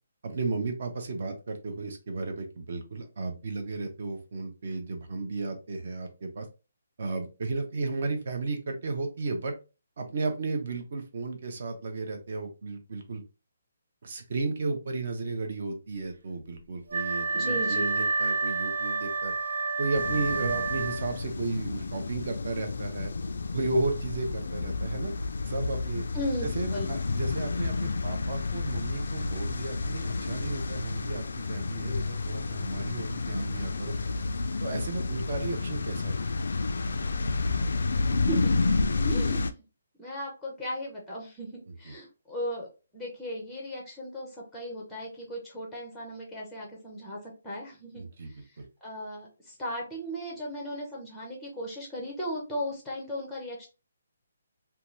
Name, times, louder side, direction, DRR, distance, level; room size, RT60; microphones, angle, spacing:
voice 1, 0.2-6.5 7.0-9.5 10.0-13.2 14.0-19.3 19.8-23.1 23.5-25.1 25.5-26.1 26.4-33.9 34.6-36.1 41.9-42.0 48.0-48.3 48.6-48.7, right 3 dB, 45° right, 4 dB, 0.6 m, -34 dB
Wind instrument woodwind instrument, 16.9-21.3, right 4 dB, 85° right, 0.6 m, -29 dB
voice 2, 17.3-18.0 26.1-26.5 26.7-26.9 38.0-38.7 39.0-39.6 40.0-42.7 42.9-53.7, equal, ahead, -2 dB, 0.5 m, -37 dB
sound 1, 19.9-39.5, left 3 dB, 70° left, 0.3 m, -30 dB
2.7 x 2.2 x 3.0 m, 0.31 s
hypercardioid pair, 175°, 0 cm